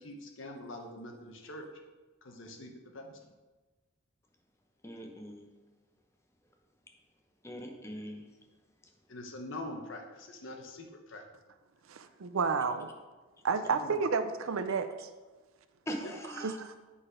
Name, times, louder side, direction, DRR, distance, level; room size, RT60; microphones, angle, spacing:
voice 1, 0.0-1.7 2.2-3.3 9.1-11.2 13.7-13.9 16.0-16.1, left 1 dB, 70° left, 3 dB, 0.9 m, -44 dB
voice 2, 4.8-5.5 7.4-8.3 15.9-16.8, equal, 15° left, 2 dB, 0.7 m, -41 dB
voice 3, 11.9-12.9 13.4-15.1 16.4-16.7, right 5 dB, 90° right, 10 dB, 0.5 m, -31 dB
7.7 x 4.2 x 5.0 m, 1.2 s
head